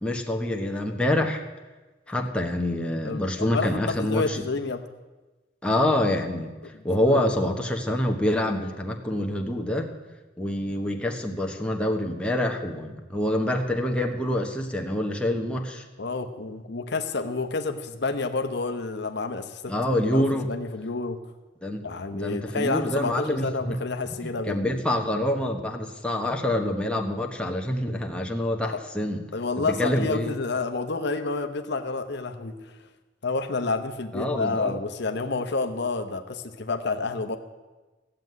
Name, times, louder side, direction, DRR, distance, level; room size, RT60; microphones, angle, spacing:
voice 1, 0.0-1.4 2.1-4.4 5.6-9.9 10.4-15.8 19.7-20.5 21.6-21.9 22.1-23.8 24.1-29.2 29.6-30.3 34.1-34.7, left 1 dB, 5° left, 1 dB, 1.3 m, -26 dB
voice 2, 3.0-4.8 6.6-7.2 16.0-21.2 21.8-24.8 28.6-28.8 29.3-32.8 33.2-37.4, left 3 dB, 60° left, 7 dB, 0.9 m, -29 dB
16.0 x 7.7 x 9.5 m, 1.2 s
head